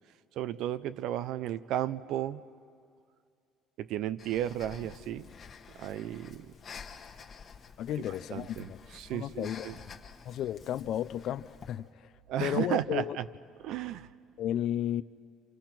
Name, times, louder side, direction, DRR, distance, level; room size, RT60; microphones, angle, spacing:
voice 1, 0.4-2.4 3.8-5.3 5.8-6.5 8.1-9.8 12.3-13.2 13.6-14.1, right 12 dB, 60° right, 0.6 m, -34 dB
Breathing, 4.2-11.9, left 6 dB, 30° left, 1.3 m, -50 dB
voice 2, 7.8-8.8 9.1-9.7 10.3-11.8 12.4-13.2 14.4-15.0, left 11 dB, 50° left, 0.5 m, -33 dB
30.0 x 27.0 x 6.0 m
cardioid pair, 155°, 0 cm